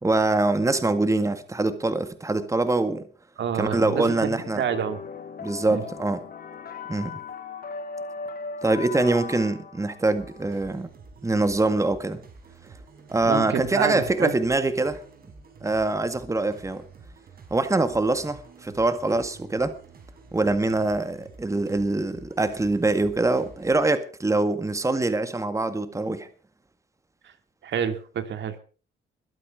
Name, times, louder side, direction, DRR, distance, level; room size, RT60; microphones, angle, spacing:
voice 1, 0.0-3.1 3.5-4.6 5.4-6.2 6.9-7.2 8.6-10.9 11.2-12.2 13.1-15.0 15.6-16.8 17.5-19.8 20.3-26.3, right 2 dB, 15° right, 1.9 m, -24 dB
voice 2, 3.4-5.0 5.7-5.8 13.2-14.4 27.2-27.3 27.6-28.6, right 7 dB, 65° right, 2.5 m, -28 dB
sound 1, 3.6-10.7, left 5 dB, 50° left, 4.5 m, -38 dB
sound 2, 10.1-23.8, right 4 dB, 50° right, 5.6 m, -49 dB
22.0 x 8.6 x 5.9 m
cardioid pair, 90°, 20 cm